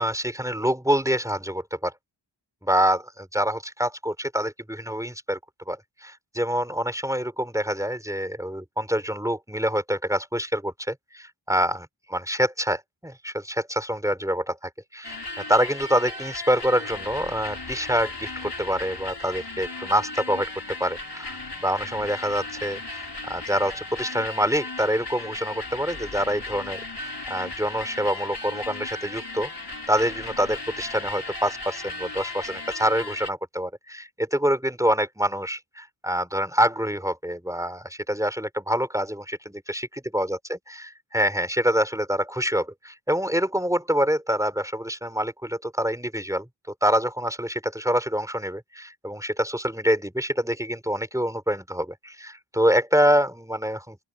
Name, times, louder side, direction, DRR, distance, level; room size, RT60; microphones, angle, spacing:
voice 1, 0.0-1.9 2.6-5.4 5.7-14.6 14.9-15.2 15.5-20.5 20.8-29.5 29.9-39.8 40.1-46.5 46.8-54.0, equal, 5° right, 3.7 m, -26 dB
sound 1, 15.0-33.3, left 3 dB, 55° left, 7.1 m, -36 dB
open air
wide cardioid pair, 75°, 47 cm